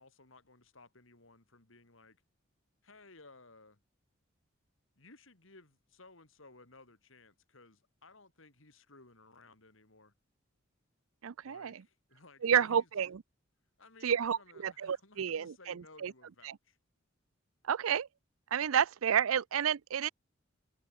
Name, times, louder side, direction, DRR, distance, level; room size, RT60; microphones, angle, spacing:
voice 1, 0.0-2.2 2.8-3.8 5.0-10.1 11.4-12.9 13.8-16.8, left 3 dB, 75° left, 3.8 m, -59 dB
voice 2, 11.2-11.8 12.4-13.2 14.0-16.1 16.4-16.6 17.6-18.1 18.5-20.1, right 8 dB, 85° right, 0.5 m, -30 dB
head